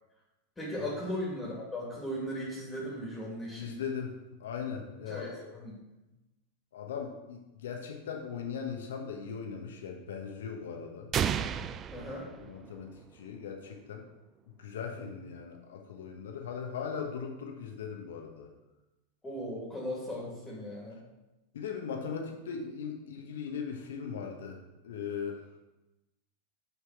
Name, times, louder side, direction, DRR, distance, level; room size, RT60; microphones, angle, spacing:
voice 1, 0.6-3.8 5.1-5.7 11.9-12.3 15.1-15.2 19.2-21.0, equal, 10° left, -4 dB, 2.3 m, -37 dB
voice 2, 3.6-4.1 4.4-5.6 6.7-11.1 12.4-14.0 14.6-18.5 21.5-25.4, left 6 dB, 65° left, 2 dB, 1.1 m, -39 dB
sound 1, 11.1-13.0, right 8 dB, 30° right, 0.4 m, -33 dB
6.8 x 4.6 x 5.8 m, 1.0 s
figure-of-eight pair, 90°, 0 cm